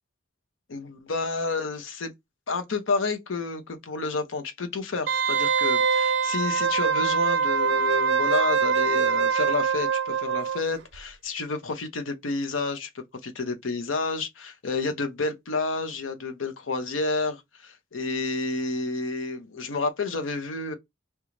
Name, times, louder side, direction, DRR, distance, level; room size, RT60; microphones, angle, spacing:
voice 1, 0.7-2.1 2.5-20.8, left 3 dB, 90° left, 0.7 m, -30 dB
Wind instrument woodwind instrument, 5.1-10.6 10.9-11.0, right 6 dB, 65° right, 0.5 m, -24 dB
3.1 x 2.3 x 3.7 m
head